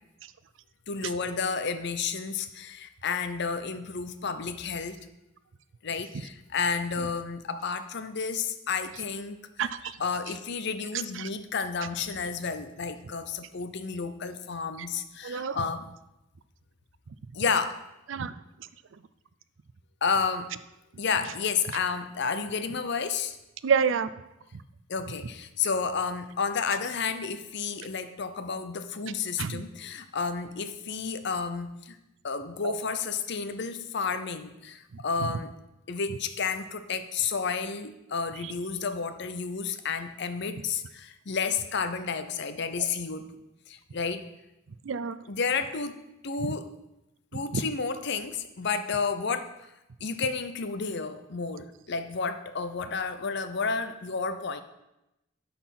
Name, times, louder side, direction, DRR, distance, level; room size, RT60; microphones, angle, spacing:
voice 1, 0.9-5.0 5.8-9.4 9.8-15.9 17.3-17.8 20.0-20.5 21.0-23.4 24.9-32.0 32.2-35.5 35.9-43.4 43.7-44.3 45.3-46.7 47.3-49.5 50.0-54.6, left 5 dB, 60° left, 10 dB, 0.7 m, -31 dB
voice 2, 9.6-10.0 11.2-11.3 15.2-15.6 18.1-18.3 23.6-24.1 29.4-29.6 32.6-32.7 38.4-38.5 42.8-42.9 44.8-45.2 47.3-47.6, right 6 dB, 70° right, 14 dB, 0.5 m, -28 dB
12.0 x 4.4 x 5.9 m, 0.93 s
head